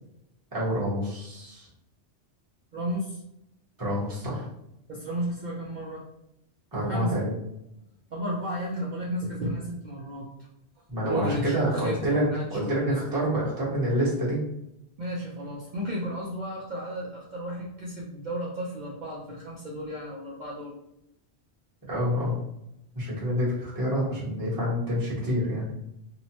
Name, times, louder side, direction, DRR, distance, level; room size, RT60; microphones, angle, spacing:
voice 1, 0.5-1.7 3.8-4.5 6.7-7.3 10.9-12.2 12.5-14.4 21.9-22.4 22.9-25.6, equal, 20° right, -7 dB, 0.9 m, -27 dB
voice 2, 2.7-3.2 4.9-6.1 6.9-7.3 8.1-10.5 11.0-13.2 15.0-20.7, equal, 55° right, -5 dB, 0.5 m, -33 dB
2.8 x 2.1 x 2.7 m, 0.84 s
omnidirectional pair, 1.2 m